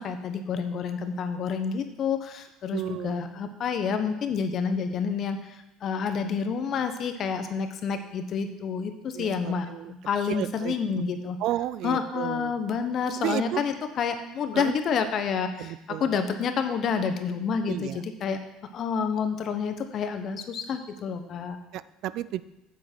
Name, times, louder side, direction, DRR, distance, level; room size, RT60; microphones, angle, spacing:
voice 1, 0.0-11.4 11.8-18.4 18.7-21.6, left 6 dB, 45° left, 8 dB, 1.0 m, -29 dB
voice 2, 2.7-3.2 9.1-9.9 10.3-11.0 11.4-12.5 13.2-13.6 14.5-14.7 15.6-16.1 17.7-18.0 21.7-22.4, right 14 dB, 65° right, 16 dB, 0.3 m, -32 dB
9.0 x 7.2 x 4.5 m, 0.91 s
supercardioid pair, 115°, 0 cm